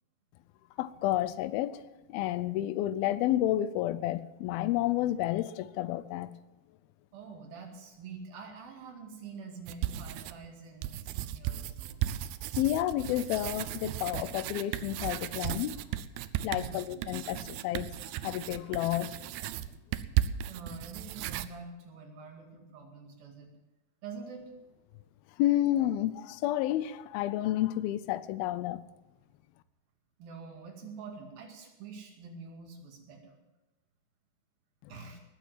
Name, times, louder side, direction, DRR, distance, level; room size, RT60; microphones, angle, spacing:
voice 1, 0.8-1.8 2.1-6.3 12.6-15.8 16.4-17.9 18.2-19.1 25.4-28.8 34.8-34.9, left 14 dB, 80° left, 15 dB, 2.4 m, -30 dB
voice 2, 7.1-12.0 16.6-17.1 20.5-23.5 24.0-24.5 30.2-33.4 34.9-35.2, right 4 dB, 70° right, 1 dB, 3.9 m, -46 dB
sound 1, 9.7-10.5 10.8-21.5, right 13 dB, 90° right, 2.6 m, -35 dB
19.5 x 7.3 x 7.5 m, 1.0 s
omnidirectional pair, 4.4 m